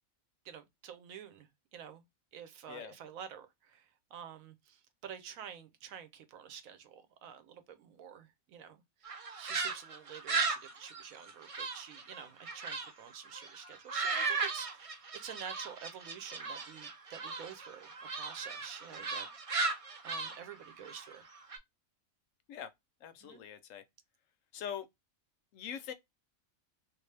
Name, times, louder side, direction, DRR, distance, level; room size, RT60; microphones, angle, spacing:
voice 1, 0.4-2.0 2.3-19.3 19.5-21.2 23.2-23.4, right 8 dB, 75° right, 1.1 m, -49 dB
sound 1, 9.1-12.9 13.3-21.6, right 4 dB, 55° right, 0.3 m, -37 dB
voice 2, 23.0-23.8 24.5-24.9 25.5-25.9, left 9 dB, 70° left, 0.9 m, -42 dB
3.2 x 2.6 x 3.2 m
omnidirectional pair, 1.5 m